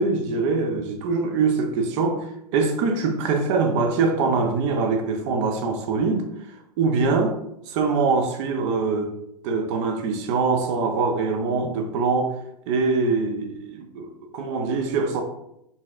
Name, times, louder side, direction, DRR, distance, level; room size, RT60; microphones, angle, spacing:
voice 1, 0.0-6.3 6.8-7.4 7.7-9.1 9.4-12.3 12.7-15.2, right 4 dB, 45° right, 5 dB, 0.6 m, -23 dB
3.9 x 2.4 x 2.4 m, 0.81 s
hypercardioid pair, 115°, 21 cm